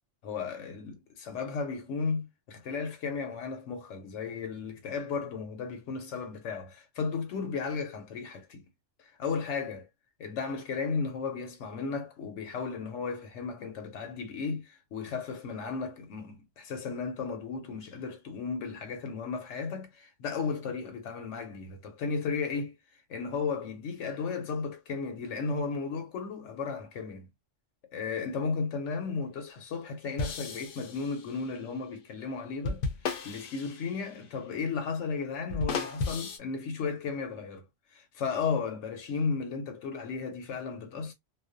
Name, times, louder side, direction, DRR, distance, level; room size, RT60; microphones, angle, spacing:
voice 1, 0.2-8.6 9.0-9.9 10.2-27.3 27.9-37.6 37.9-41.1, left 5 dB, 85° left, 0.9 m, -34 dB
sound 1, 30.2-31.5 32.7-34.3 35.5-36.4, left 4 dB, 60° left, 0.6 m, -35 dB
2.3 x 2.1 x 2.4 m
omnidirectional pair, 1.2 m